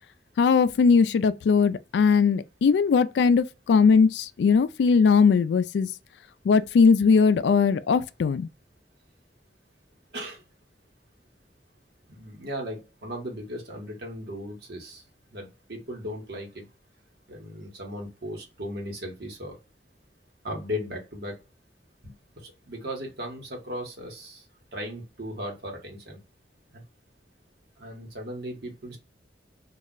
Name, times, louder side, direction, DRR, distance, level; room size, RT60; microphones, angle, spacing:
voice 1, 0.4-5.9 6.5-8.5, left 5 dB, 75° left, 0.3 m, -20 dB
voice 2, 12.1-15.0 15.3-16.6 17.3-19.6 20.4-21.4 22.4-24.4 24.7-26.2 26.7-26.8 27.8-29.0, equal, 65° right, 1.1 m, -37 dB
2.4 x 2.1 x 3.6 m
head